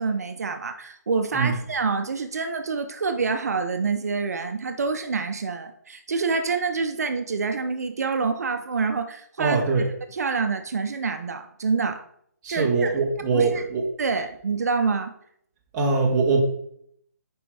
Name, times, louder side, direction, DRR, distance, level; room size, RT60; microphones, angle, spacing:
voice 1, 0.0-9.6 10.1-12.0 12.5-13.0 13.3-13.6 14.0-15.1, right 4 dB, 65° right, 7 dB, 0.6 m, -27 dB
voice 2, 9.4-9.9 12.4-13.9 15.7-16.4, right 4 dB, 15° right, -1 dB, 1.0 m, -22 dB
6.8 x 5.2 x 3.3 m, 0.68 s
hypercardioid pair, 165°, 9 cm